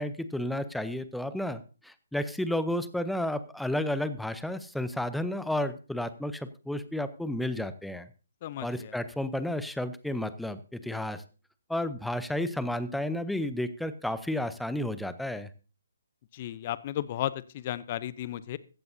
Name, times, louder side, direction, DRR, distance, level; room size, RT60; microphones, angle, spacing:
voice 1, 0.0-8.1 8.6-11.2 11.7-15.5, left 1 dB, ahead, 13 dB, 0.7 m, -32 dB
voice 2, 8.4-8.9 16.3-18.6, left 12 dB, 35° left, 17 dB, 0.7 m, -34 dB
15.5 x 14.5 x 2.7 m, 0.34 s
figure-of-eight pair, 140°, 0 cm